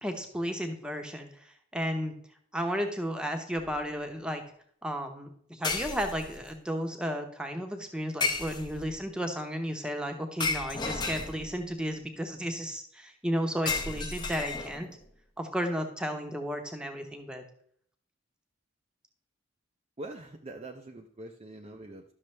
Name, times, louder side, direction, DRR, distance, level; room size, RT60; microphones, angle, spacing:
voice 1, 0.0-2.1 2.5-4.4 4.8-14.9 15.4-17.4, equal, 5° right, 4 dB, 0.9 m, -33 dB
sound 1, 3.6-3.8 5.6-6.5 8.2-9.0 10.4-11.7 13.7-15.0, left 4 dB, 20° left, 0.7 m, -33 dB
voice 2, 20.0-22.0, right 2 dB, 30° right, 2 dB, 0.5 m, -43 dB
12.0 x 6.4 x 3.3 m, 0.63 s
head